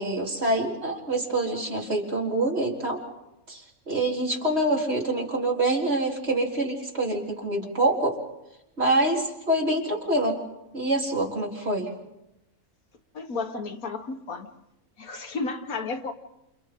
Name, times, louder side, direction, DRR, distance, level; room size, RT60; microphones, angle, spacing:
voice 1, 0.0-3.0 3.5-8.2 8.8-10.4 10.7-11.9, right 1 dB, 45° right, -2 dB, 4.1 m, -26 dB
voice 2, 13.1-14.5 15.0-16.1, left 4 dB, 65° left, 5 dB, 1.8 m, -32 dB
29.5 x 29.0 x 3.8 m, 0.91 s
omnidirectional pair, 1.6 m